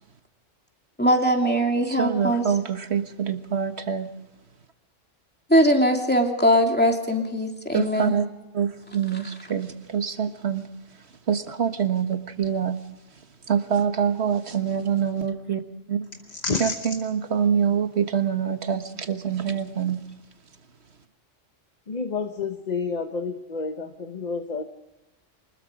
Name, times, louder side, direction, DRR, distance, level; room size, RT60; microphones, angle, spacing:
voice 1, 1.0-2.4 5.5-8.2, equal, 10° left, 2 dB, 2.7 m, -21 dB
voice 2, 1.9-4.1 7.7-8.3 8.5-10.6 11.3-12.8 13.5-15.6 15.9-16.0 16.6-20.0, right 7 dB, 60° right, 8 dB, 1.6 m, -25 dB
voice 3, 16.3-16.7 21.9-24.6, left 4 dB, 35° left, 7 dB, 1.1 m, -29 dB
24.5 x 21.0 x 5.1 m, 1.0 s
omnidirectional pair, 1.3 m